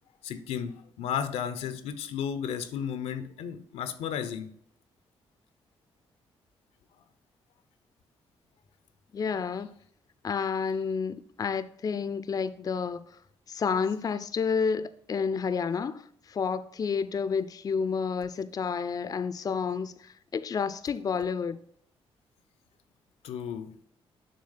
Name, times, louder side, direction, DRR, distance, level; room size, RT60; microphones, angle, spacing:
voice 1, 0.2-4.5 23.2-23.8, left 8 dB, 85° left, 0.5 m, -34 dB
voice 2, 9.1-9.7 10.2-13.0 13.5-21.6, left 6 dB, 35° left, 0.4 m, -30 dB
6.7 x 3.2 x 5.6 m
cardioid pair, 70°, 11 cm